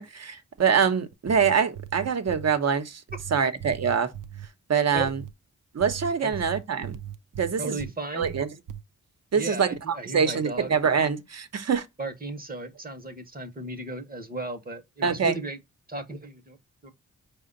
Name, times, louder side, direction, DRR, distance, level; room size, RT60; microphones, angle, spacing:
voice 1, 0.0-3.0 3.3-4.1 4.7-5.2 5.7-7.0 7.4-7.8 8.1-8.5 9.3-11.9 15.0-15.4, right 6 dB, 50° right, 0.8 m, -24 dB
sound 1, 1.1-2.5 3.1-4.5 5.0-5.3 5.8-7.9 8.2-8.8, right 10 dB, 70° right, 0.5 m, -38 dB
voice 2, 7.6-8.3 9.3-10.7 12.0-15.6 15.9-16.6 16.8-16.9, right 2 dB, 25° right, 0.9 m, -35 dB
4.9 x 2.2 x 3.7 m
cardioid pair, 65°, 32 cm